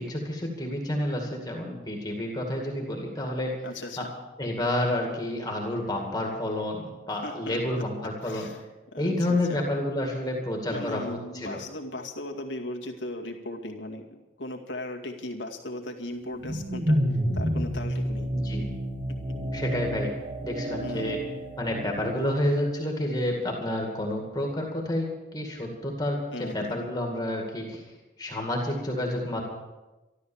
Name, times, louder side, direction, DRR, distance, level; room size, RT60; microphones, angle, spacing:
voice 1, 0.0-3.6 4.0-4.1 4.4-8.5 9.0-11.6 18.3-18.7 19.5-20.1 20.4-21.2 21.6-25.1 25.3-27.8 28.2-29.4, left 1 dB, 20° left, 0 dB, 2.2 m, -29 dB
voice 2, 3.6-4.1 7.2-7.8 8.2-8.6 8.9-9.6 10.7-17.0 17.3-18.3 19.1-19.2 20.8-21.2 26.3-26.9, left 1 dB, 90° left, 1 dB, 2.1 m, -37 dB
sound 1, 16.2-22.5, equal, 30° right, 1.4 m, -30 dB
13.0 x 12.5 x 7.2 m, 1.1 s
head